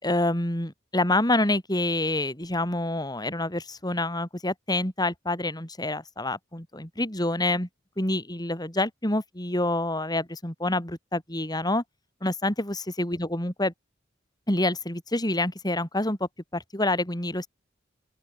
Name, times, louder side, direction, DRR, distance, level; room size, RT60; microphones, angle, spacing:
voice 1, 0.0-7.7 8.0-11.8 12.2-13.7 14.5-17.5, left 1 dB, 20° left, 5.2 m, -27 dB
open air
head